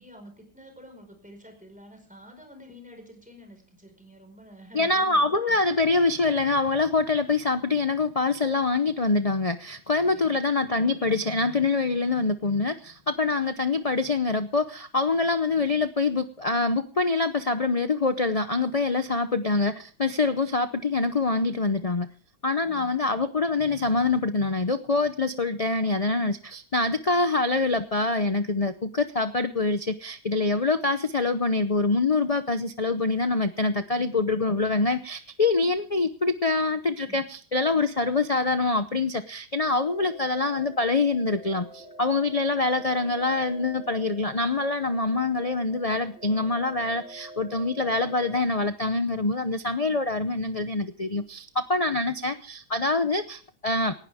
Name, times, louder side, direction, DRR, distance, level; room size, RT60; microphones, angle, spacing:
voice 1, 0.0-5.6 10.1-10.4 22.6-23.0 37.1-37.2, equal, 5° right, 4 dB, 4.9 m, -49 dB
voice 2, 4.7-22.1 22.4-53.9, left 3 dB, 65° left, 10 dB, 0.3 m, -25 dB
sound 1, 39.6-48.4, right 1 dB, 35° left, 8.2 m, -46 dB
18.5 x 16.0 x 3.6 m, 0.42 s
omnidirectional pair, 1.8 m